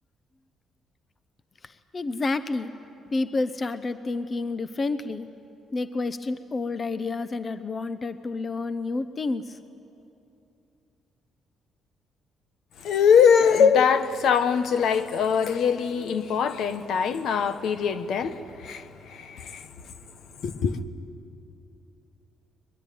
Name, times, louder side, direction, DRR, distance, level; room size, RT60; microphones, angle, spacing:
voice 1, 1.6-2.7 3.1-5.3 5.7-9.6, left 3 dB, 35° left, 0.8 m, -29 dB
voice 2, 12.8-19.7 20.4-20.8, left 7 dB, 75° left, 1.2 m, -22 dB
22.5 x 21.5 x 9.4 m
cardioid pair, 90°, 0 cm